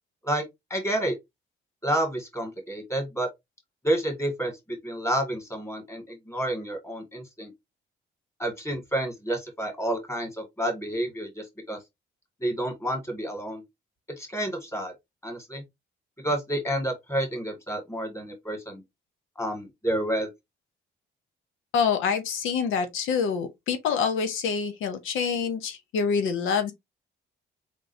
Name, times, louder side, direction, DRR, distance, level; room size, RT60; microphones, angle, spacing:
voice 1, 0.7-1.1 1.8-3.3 3.8-7.5 8.4-11.8 12.4-13.6 14.2-14.9 15.2-15.6 16.2-18.8 19.4-20.3, right 1 dB, 15° left, 2.0 m, -29 dB
voice 2, 21.7-26.7, left 6 dB, 85° left, 0.8 m, -26 dB
3.8 x 3.6 x 2.7 m
cardioid pair, 90°, 20 cm